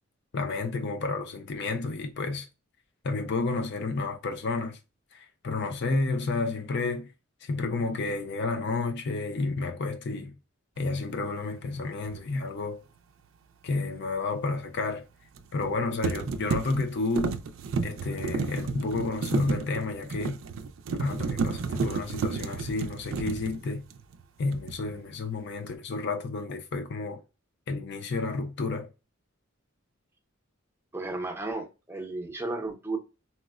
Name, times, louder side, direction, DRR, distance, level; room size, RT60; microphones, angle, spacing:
voice 1, 0.3-2.5 3.0-4.8 5.1-7.1 7.4-10.3 10.8-12.8 13.6-15.1 15.5-17.4 17.8-20.4 21.0-23.8 24.4-27.2 27.7-28.9, left 3 dB, 60° left, 0.5 m, -31 dB
sound 1, 12.0-12.2 15.4-15.7 16.0-24.2 24.5-25.0, right 4 dB, 70° right, 0.4 m, -32 dB
voice 2, 30.9-33.0, right 2 dB, 10° right, 0.6 m, -34 dB
4.3 x 2.1 x 2.3 m
head